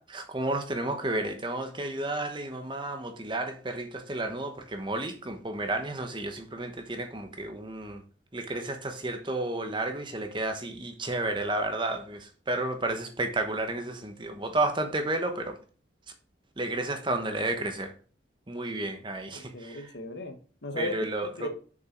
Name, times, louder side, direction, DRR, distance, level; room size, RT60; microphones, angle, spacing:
voice 1, 0.0-8.0 8.3-15.6 16.6-17.9 18.5-19.8 20.8-21.5, right 2 dB, 25° right, 1.0 m, -32 dB
voice 2, 19.3-20.9 21.2-21.5, left 2 dB, 70° left, 1.4 m, -37 dB
6.8 x 5.3 x 5.2 m
head